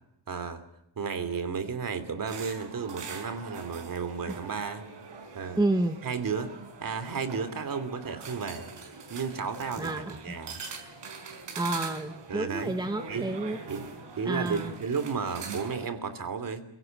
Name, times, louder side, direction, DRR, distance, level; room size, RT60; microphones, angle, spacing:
voice 1, 0.3-0.6 1.0-4.9 5.3-5.6 6.0-6.5 6.8-8.7 9.1-10.6 12.3-13.3 13.7-13.9 14.2-16.6, right 5 dB, 45° right, 11 dB, 3.1 m, -33 dB
sound 1, 2.3-15.8, right 4 dB, 60° right, 5.4 m, -43 dB
voice 2, 5.6-6.0 9.8-10.2 11.6-13.6 14.2-14.7, right 2 dB, 10° right, 7 dB, 1.3 m, -29 dB
28.5 x 17.5 x 9.0 m, 0.82 s
wide cardioid pair, 175°, 46 cm